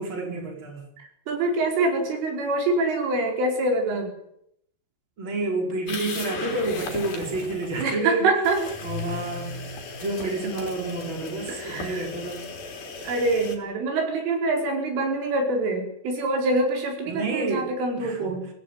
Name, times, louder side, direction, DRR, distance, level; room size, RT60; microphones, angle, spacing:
voice 1, 0.0-0.9 5.2-8.3 8.8-9.5 10.0-12.4 17.1-17.7 18.0-18.3, right 2 dB, 25° right, 3 dB, 5.2 m, -29 dB
voice 2, 1.0-4.1 7.8-8.6 11.5-12.1 13.0-18.5, right 2 dB, 90° right, 3 dB, 7.3 m, -25 dB
sound 1, 5.9-7.8 8.4-13.6, left 4 dB, 50° left, 5.4 m, -36 dB
24.0 x 16.5 x 9.4 m, 0.74 s
omnidirectional pair, 5.5 m